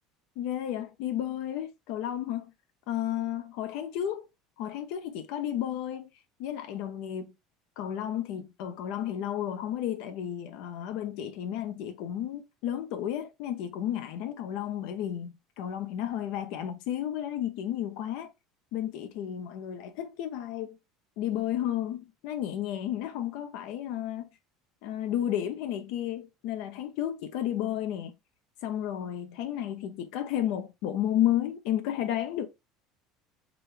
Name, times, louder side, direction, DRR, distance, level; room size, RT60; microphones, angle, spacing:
voice 1, 0.4-2.5 2.9-4.3 4.6-6.1 6.4-7.3 7.8-18.3 18.7-20.7 21.2-24.3 24.8-28.1 28.6-32.5, left 11 dB, 70° left, 0.8 m, -32 dB
3.9 x 3.4 x 3.1 m
supercardioid pair, 100°, 0 cm